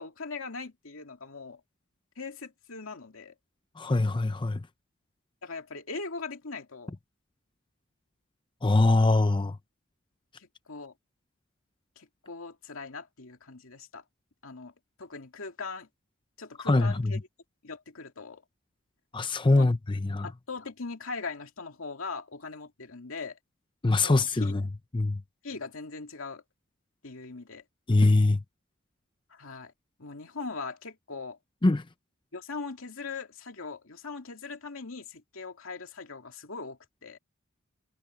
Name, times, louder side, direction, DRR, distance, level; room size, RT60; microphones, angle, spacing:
voice 1, 0.0-1.6 2.2-3.3 5.4-7.0 10.4-10.9 12.0-14.0 14.4-14.7 15.0-15.9 16.4-17.2 17.6-18.4 19.5-19.7 20.2-23.4 24.0-24.6 25.4-26.4 27.0-27.6 29.3-29.7 30.0-31.4 32.3-37.2, left 4 dB, 80° left, 2.3 m, -40 dB
voice 2, 3.8-4.6 8.6-9.6 16.6-17.1 19.1-20.3 23.8-24.6 24.9-25.2 27.9-28.4 31.6-31.8, left 2 dB, 25° left, 0.6 m, -23 dB
head